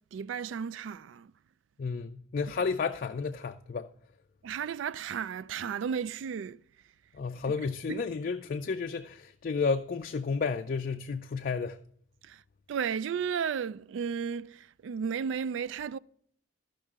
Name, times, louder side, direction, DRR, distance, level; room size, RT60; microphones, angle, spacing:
voice 1, 0.0-1.3 4.4-6.6 7.9-8.0 12.2-12.4 12.7-16.0, right 7 dB, 70° right, 0.3 m, -34 dB
voice 2, 1.8-3.9 7.1-11.8, left 5 dB, 45° left, 0.4 m, -32 dB
14.0 x 5.5 x 3.6 m
head